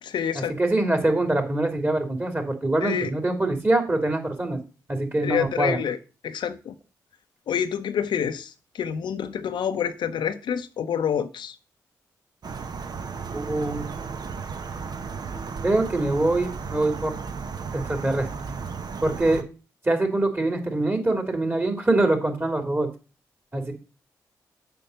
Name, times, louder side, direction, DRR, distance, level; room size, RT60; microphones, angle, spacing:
voice 1, 0.0-0.6 2.8-3.1 5.2-6.0 6.2-6.7 7.5-11.6, left 8 dB, 75° left, 0.7 m, -27 dB
voice 2, 0.6-4.6 4.9-5.8 13.3-13.8 15.6-17.1 17.7-18.3 19.0-19.4 19.8-22.9 23.5-23.7, right 2 dB, 25° right, 2.9 m, -24 dB
sound 1, 12.4-19.4, right 5 dB, 60° right, 0.9 m, -34 dB
6.8 x 5.3 x 6.5 m
supercardioid pair, 40°, 8 cm